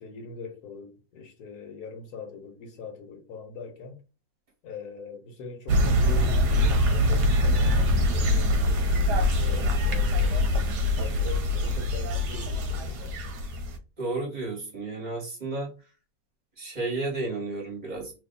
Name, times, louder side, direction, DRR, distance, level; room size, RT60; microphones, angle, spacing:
voice 1, 0.0-4.0 4.6-10.5 10.9-13.2, left 4 dB, 75° left, 1.5 m, -42 dB
sound 1, 5.7-13.8, left 1 dB, 85° right, 1.4 m, -24 dB
voice 2, 14.0-15.8 16.6-18.1, right 3 dB, 30° right, 1.7 m, -32 dB
3.4 x 2.6 x 3.8 m
omnidirectional pair, 1.7 m